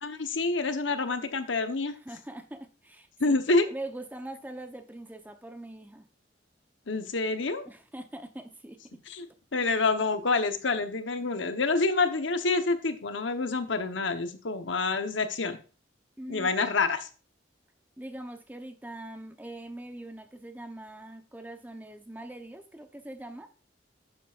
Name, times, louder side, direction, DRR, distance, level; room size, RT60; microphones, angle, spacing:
voice 1, 0.0-1.9 3.2-3.7 6.9-7.7 9.1-9.3 9.5-15.6 16.3-17.1, left 3 dB, 80° left, 9 dB, 1.0 m, -27 dB
voice 2, 2.0-3.4 3.7-6.1 7.7-8.8 16.2-16.5 18.0-23.5, right 1 dB, 10° right, 7 dB, 0.8 m, -42 dB
11.0 x 7.4 x 2.5 m, 0.37 s
head